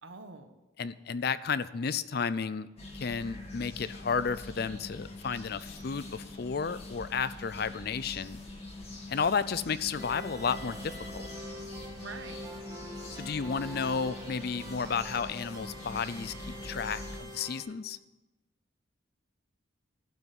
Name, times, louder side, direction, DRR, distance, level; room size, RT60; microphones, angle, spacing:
voice 1, 0.0-0.5 12.0-12.5, right 4 dB, 80° right, 7 dB, 1.3 m, -45 dB
voice 2, 0.8-2.7 2.9-8.4 9.1-11.3 13.1-18.0, left 5 dB, 50° left, 15 dB, 0.5 m, -32 dB
sound 1, 2.8-17.2, left 2 dB, 30° left, 1.8 m, -44 dB
sound 2, 10.0-17.6, equal, 20° right, 1.9 m, -45 dB
12.0 x 5.8 x 9.3 m, 1.1 s
head